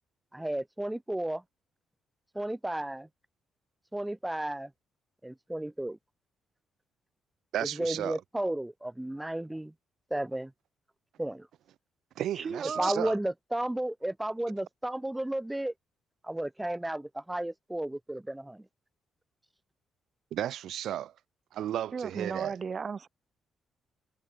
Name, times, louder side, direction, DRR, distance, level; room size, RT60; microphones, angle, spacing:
voice 1, 0.3-1.4 2.3-3.1 3.9-4.7 5.2-6.0 7.7-9.7 10.1-10.5 11.2-11.5 12.8-15.7 16.2-18.6, right 1 dB, 10° right, 0.8 m, -33 dB
voice 2, 7.5-8.2 12.2-13.2 20.3-21.1 21.5-22.5, right 11 dB, 75° right, 1.1 m, -33 dB
voice 3, 12.3-12.9 21.9-23.1, right 5 dB, 40° right, 4.1 m, -35 dB
cardioid pair, 90°, 0 cm